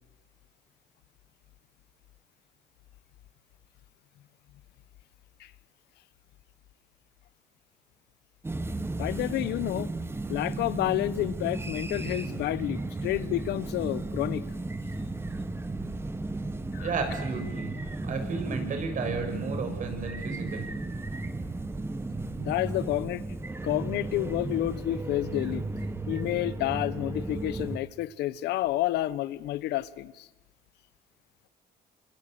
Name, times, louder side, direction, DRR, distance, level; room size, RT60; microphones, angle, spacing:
sound 1, 8.4-27.8, right 2 dB, 15° right, 1.6 m, -34 dB
voice 1, 9.0-9.9 10.3-14.4 16.7-16.9 22.4-23.4 23.6-25.6 26.1-30.3, left 15 dB, 80° left, 1.1 m, -30 dB
voice 2, 16.8-17.8 18.0-20.7, right 4 dB, 50° right, 6.8 m, -33 dB
26.5 x 25.5 x 8.1 m
cardioid pair, 110°, 17 cm